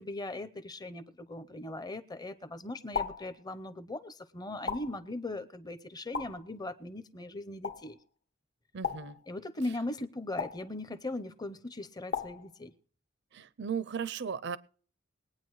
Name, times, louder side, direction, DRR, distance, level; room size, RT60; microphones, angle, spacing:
voice 1, 0.0-8.0 9.3-12.7, left 2 dB, 20° left, 12 dB, 0.7 m, -39 dB
sound 1, 2.9-3.3 4.7-5.1 6.1-6.5 7.6-7.9 8.8-9.2 10.4-10.7 12.1-12.5, left 5 dB, 55° left, 0.9 m, -36 dB
voice 2, 8.7-9.2 13.3-14.6, right 6 dB, 60° right, 17 dB, 0.5 m, -36 dB
21.5 x 9.0 x 3.1 m, 0.43 s
head